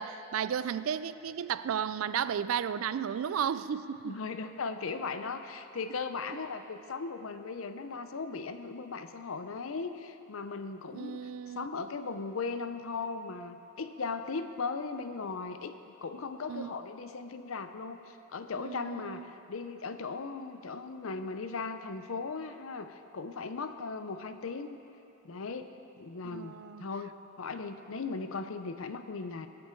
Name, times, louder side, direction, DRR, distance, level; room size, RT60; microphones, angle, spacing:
voice 1, 0.0-4.1 6.3-6.4 10.9-11.7 16.5-16.7 18.6-19.3 26.3-26.9, right 8 dB, 70° right, 15 dB, 0.3 m, -34 dB
voice 2, 4.0-11.2 11.6-24.8 25.2-29.5, left 4 dB, 70° left, 9 dB, 0.6 m, -38 dB
18.5 x 7.2 x 4.5 m, 2.9 s
head